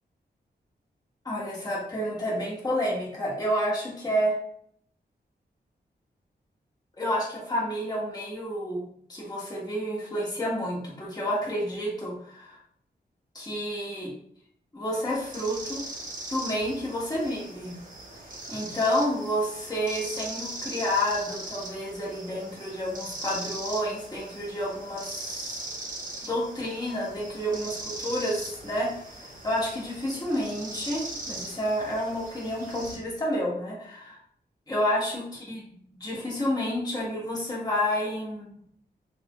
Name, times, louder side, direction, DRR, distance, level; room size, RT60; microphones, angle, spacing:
voice 1, 1.2-4.4 7.0-8.8 9.1-12.6 13.3-14.1 14.7-15.8 16.3-17.7 18.5-25.5 26.2-28.9 29.2-34.2 34.7-35.6 36.0-38.5, equal, 20° left, -6 dB, 1.2 m, -29 dB
sound 1, 15.1-33.0, right 2 dB, 45° right, 0.8 m, -40 dB
3.1 x 2.3 x 2.9 m, 0.66 s
wide cardioid pair, 90°, 18 cm